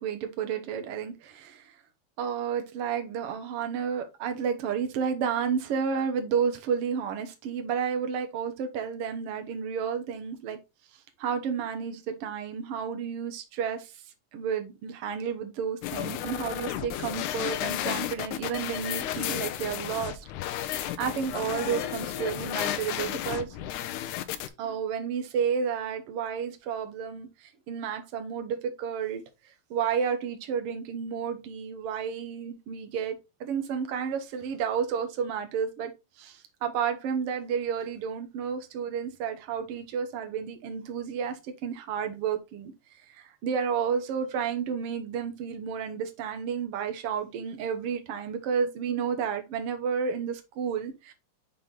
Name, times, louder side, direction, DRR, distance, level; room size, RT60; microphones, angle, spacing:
voice 1, 0.0-1.8 2.2-10.6 11.2-13.9 14.3-23.6 24.6-35.9 36.2-42.7 43.1-51.1, right 7 dB, 70° right, 1.4 m, -31 dB
sound 1, 15.8-24.5, left 12 dB, 80° left, 1.9 m, -33 dB
6.3 x 4.2 x 3.7 m
omnidirectional pair, 3.9 m